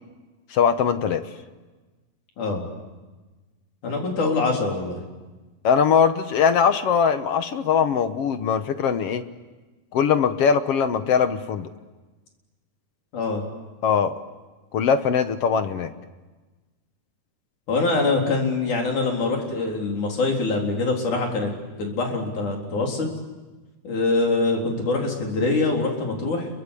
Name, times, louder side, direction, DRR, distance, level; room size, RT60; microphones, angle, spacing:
voice 1, 0.5-1.2 5.6-9.2 9.9-11.7 13.8-14.1 14.7-15.9, left 7 dB, 65° left, 10 dB, 1.8 m, -21 dB
voice 2, 3.8-5.0 13.1-13.4 17.7-21.5 21.8-23.1 23.8-26.5, left 3 dB, 80° left, 1 dB, 5.4 m, -24 dB
28.5 x 23.5 x 8.4 m, 1.2 s
omnidirectional pair, 3.5 m